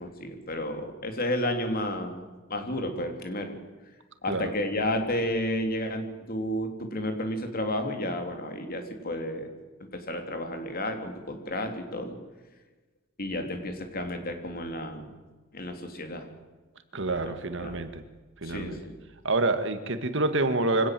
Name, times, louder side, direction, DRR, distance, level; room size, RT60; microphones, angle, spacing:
voice 1, 0.0-3.5 4.2-9.5 9.9-12.1 13.2-15.1 15.5-16.3 17.2-17.3 17.6-17.7 18.4-18.9, left 1 dB, 50° left, 5 dB, 3.3 m, -32 dB
voice 2, 16.9-18.0 18.4-18.8 19.2-20.9, right 2 dB, 65° right, 9 dB, 1.9 m, -27 dB
24.5 x 17.5 x 7.7 m, 1.2 s
head